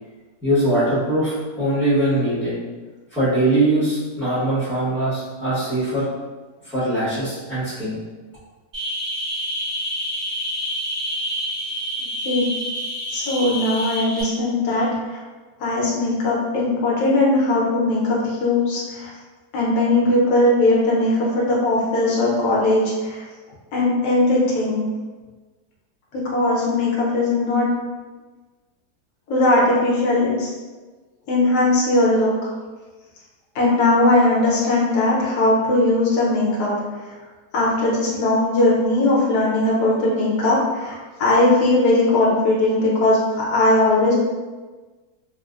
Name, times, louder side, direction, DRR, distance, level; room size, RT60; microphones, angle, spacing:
voice 1, 0.4-2.6 3.1-6.1 6.6-8.0, right 1 dB, ahead, -13 dB, 0.7 m, -21 dB
sound 1, 8.7-14.2, equal, 70° right, 1.9 m, -28 dB
voice 2, 13.1-15.2 15.6-19.1 19.5-23.2 23.7-24.8 26.1-27.7 29.3-30.5 31.3-32.3 33.5-36.7 37.5-44.1, left 2 dB, 65° left, -5 dB, 1.4 m, -19 dB
4.0 x 2.1 x 2.4 m, 1.3 s
omnidirectional pair, 1.8 m